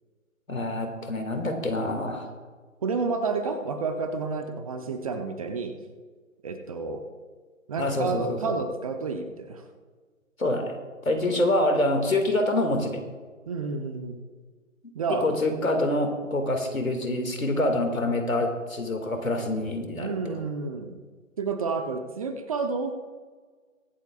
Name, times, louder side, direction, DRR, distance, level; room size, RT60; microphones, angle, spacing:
voice 1, 0.5-2.3 7.8-8.6 10.4-10.8 11.0-13.0 15.2-20.4, left 1 dB, 90° left, 4 dB, 2.4 m, -26 dB
voice 2, 2.8-5.7 6.4-7.0 7.7-9.6 13.5-14.2 14.9-15.3 20.0-21.0 21.4-22.9, right 4 dB, 25° right, 7 dB, 0.8 m, -30 dB
23.5 x 8.1 x 2.5 m, 1.5 s
figure-of-eight pair, 150°, 40 cm